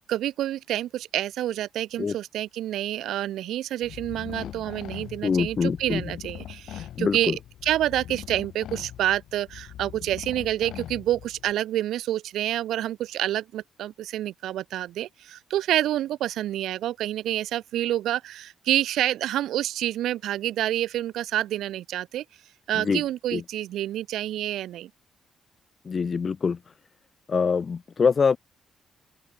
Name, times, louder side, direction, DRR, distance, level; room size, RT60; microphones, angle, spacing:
voice 1, 0.0-22.2 22.7-24.9, right 13 dB, 80° right, 0.8 m, -28 dB
sound 1, 3.8-11.5, left 11 dB, 75° left, 1.9 m, -41 dB
voice 2, 5.2-6.1 7.0-7.4 22.8-23.0 23.3-23.4 25.9-26.6 27.3-28.4, left 5 dB, 40° left, 0.3 m, -24 dB
open air
cardioid pair, 90°, 0 cm